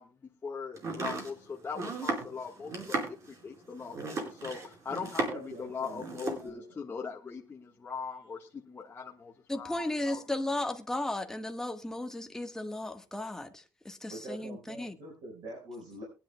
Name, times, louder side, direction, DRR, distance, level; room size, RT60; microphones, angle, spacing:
voice 1, 0.0-10.2, left 5 dB, 25° left, 1.4 m, -41 dB
Domestic sounds home sounds, 0.8-5.6 5.8-6.5, right 3 dB, 45° right, 4.5 m, -35 dB
voice 2, 5.3-6.7 14.1-16.0, right 1 dB, 70° right, 4.8 m, -44 dB
voice 3, 9.5-14.9, left 1 dB, 5° left, 1.3 m, -35 dB
22.0 x 10.5 x 2.2 m
cardioid pair, 130°, 7 cm